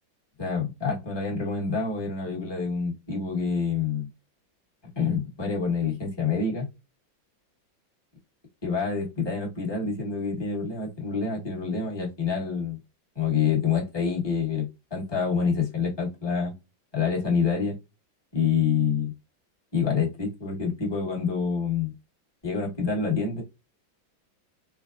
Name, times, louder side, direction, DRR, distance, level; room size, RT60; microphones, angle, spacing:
voice 1, 0.4-4.1 5.0-6.7 8.6-12.8 13.1-16.5 16.9-17.8 18.3-19.1 19.7-21.9 22.4-23.4, left 5 dB, 20° left, -4 dB, 0.9 m, -27 dB
4.5 x 2.1 x 2.4 m, 0.25 s
omnidirectional pair, 2.1 m